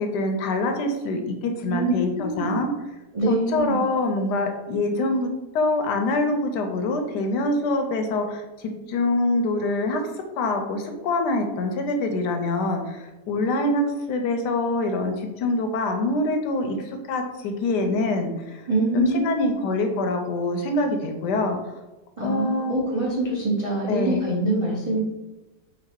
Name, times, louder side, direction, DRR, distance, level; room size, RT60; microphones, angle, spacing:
voice 1, 0.0-2.7 3.3-5.3 5.5-10.1 10.4-18.6 18.9-21.7 22.2-22.8 23.9-24.3, left 2 dB, 75° left, 5 dB, 1.1 m, -25 dB
voice 2, 1.7-2.6 3.1-3.8 18.7-19.5 22.2-25.0, right 2 dB, 45° right, -6 dB, 0.4 m, -25 dB
3.9 x 2.6 x 4.5 m, 1.1 s
omnidirectional pair, 1.9 m